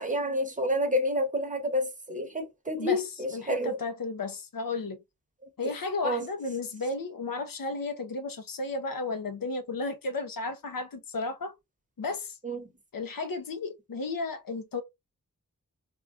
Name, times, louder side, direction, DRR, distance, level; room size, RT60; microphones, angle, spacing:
voice 1, 0.0-3.8 6.0-6.2 12.4-12.7, left 1 dB, 25° right, 0.9 m, -29 dB
voice 2, 2.8-5.0 5.6-11.5 12.0-12.4 12.9-14.8, left 3 dB, 80° left, 0.7 m, -33 dB
3.5 x 2.4 x 2.4 m
wide cardioid pair, 85°, 33 cm